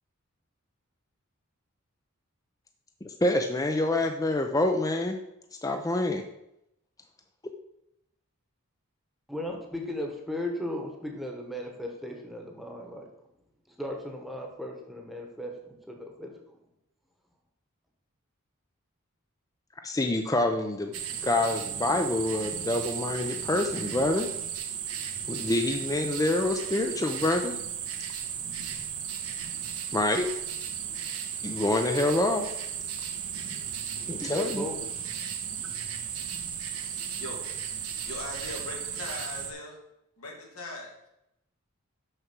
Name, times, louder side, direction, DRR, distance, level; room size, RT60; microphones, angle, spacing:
voice 1, 3.0-5.2 5.6-6.2 19.8-20.9 21.2-24.3 25.3-27.6 29.9-30.3 31.4-32.4 34.1-34.7, left 2 dB, 15° left, 5 dB, 0.5 m, -26 dB
voice 2, 9.3-13.1 13.8-16.4 34.2-34.8, left 1 dB, ahead, 1 dB, 1.1 m, -36 dB
sound 1, 20.9-39.5, right 8 dB, 85° right, 1.2 m, -35 dB
voice 3, 38.1-39.8 40.2-41.1, left 2 dB, 90° left, -1 dB, 2.5 m, -39 dB
6.5 x 6.2 x 6.0 m, 0.84 s
head